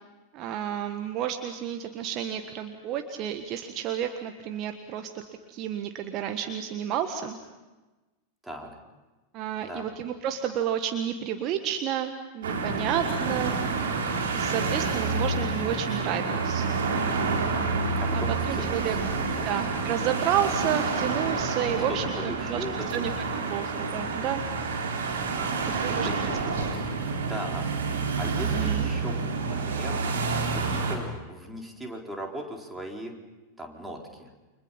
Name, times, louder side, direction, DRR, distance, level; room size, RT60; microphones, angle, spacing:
voice 1, 0.3-5.2 5.5-7.4 9.3-13.5 14.3-16.7 18.5-19.0 19.4-22.6 22.9-23.1 23.4-24.4 25.8-26.1 28.6-28.9, right 9 dB, 35° right, 7 dB, 1.5 m, -31 dB
sound 1, 12.4-31.0, right 4 dB, 65° right, 4.3 m, -28 dB
voice 2, 16.9-17.2 18.0-19.5 21.9-22.9 25.3-30.1 30.5-33.1 33.6-34.3, right 1 dB, 5° right, 1 dB, 4.2 m, -39 dB
30.0 x 25.5 x 5.8 m, 1.2 s
figure-of-eight pair, 90°, 0 cm